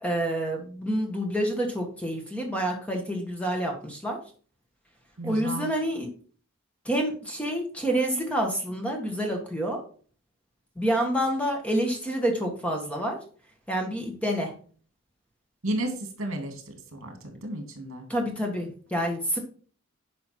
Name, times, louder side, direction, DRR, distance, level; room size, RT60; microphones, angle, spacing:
voice 1, 0.0-4.2 5.2-6.1 6.9-9.8 10.8-13.2 13.7-14.5 18.1-19.4, right 1 dB, 5° left, 1 dB, 1.7 m, -28 dB
voice 2, 5.2-5.7 15.6-18.0, right 1 dB, 70° right, 4 dB, 2.8 m, -33 dB
10.5 x 5.4 x 4.5 m, 0.42 s
head